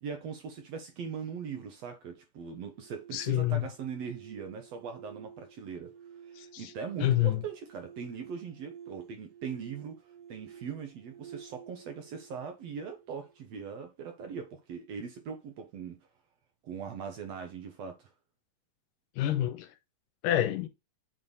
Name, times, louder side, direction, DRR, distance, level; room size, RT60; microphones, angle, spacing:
voice 1, 0.0-5.9 6.3-10.0 10.3-16.0 16.6-18.1, right 6 dB, 65° right, 1.8 m, -40 dB
sound 1, 2.6-13.7, right 7 dB, 85° right, 2.4 m, -52 dB
voice 2, 3.1-3.7 6.4-6.7 7.0-7.4 19.2-19.7 20.2-20.7, left 13 dB, 85° left, 2.4 m, -27 dB
9.0 x 3.3 x 3.9 m
omnidirectional pair, 3.8 m